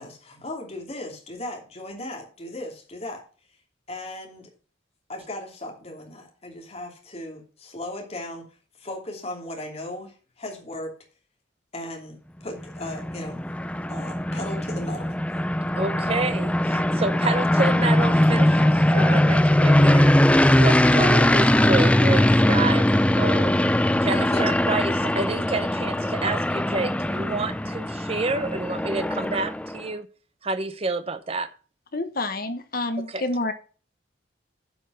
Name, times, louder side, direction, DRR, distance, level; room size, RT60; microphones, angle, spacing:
voice 1, 0.0-3.2 3.9-4.5 5.1-10.9 11.7-13.4 13.9-15.1 24.3-24.4, left 1 dB, 35° left, 2.9 m, -37 dB
sound 1, 12.6-29.8, left 1 dB, 5° left, 0.4 m, -21 dB
voice 2, 15.7-20.1 20.6-23.5 24.0-30.1 30.4-31.5 33.1-33.2, right 3 dB, 30° right, 0.7 m, -29 dB
voice 3, 31.9-33.5, left 2 dB, 50° left, 1.3 m, -28 dB
11.0 x 5.4 x 5.6 m
head